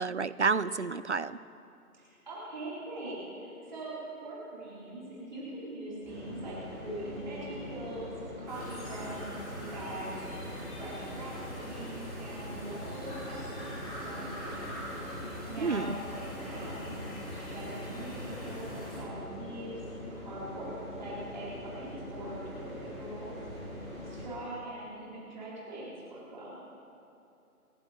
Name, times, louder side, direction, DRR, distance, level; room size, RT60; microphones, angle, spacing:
voice 1, 0.0-1.4 15.6-15.9, right 4 dB, 50° right, 15 dB, 0.5 m, -30 dB
voice 2, 1.9-10.1 10.7-14.7 15.1-16.9 17.3-19.8 20.1-23.4 24.0-26.6, right 1 dB, 30° right, -7 dB, 4.1 m, -42 dB
sound 1, 6.0-24.2, equal, 5° left, 3.0 m, -43 dB
sound 2, 8.5-19.0, equal, 25° left, 5.0 m, -43 dB
28.5 x 11.0 x 4.3 m, 2.7 s
figure-of-eight pair, 165°, 46 cm